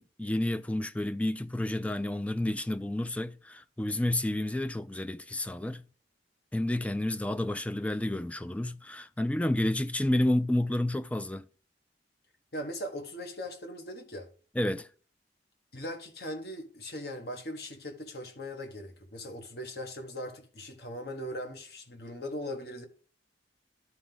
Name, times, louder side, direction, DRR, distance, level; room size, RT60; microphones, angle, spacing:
voice 1, 0.0-5.9 6.5-11.5 14.6-14.9, left 1 dB, 10° left, 0.3 m, -30 dB
voice 2, 12.5-14.3 15.7-22.9, equal, 60° left, 1.6 m, -39 dB
11.5 x 4.7 x 3.8 m
head